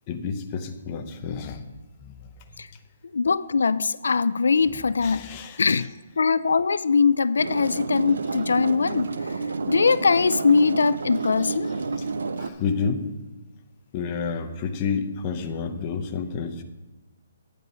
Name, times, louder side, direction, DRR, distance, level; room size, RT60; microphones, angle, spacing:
voice 1, 0.1-1.6 2.0-2.2 4.7-5.9 11.9-13.0 13.9-16.6, left 5 dB, 15° left, 5 dB, 0.5 m, -30 dB
voice 2, 3.1-5.3 5.6-5.9 6.2-9.4 9.7-11.7, left 5 dB, 80° left, 16 dB, 0.3 m, -21 dB
sound 1, 7.4-12.5, right 4 dB, 65° right, 0.6 m, -30 dB
9.0 x 8.1 x 5.6 m, 1.2 s
hypercardioid pair, 180°, 0 cm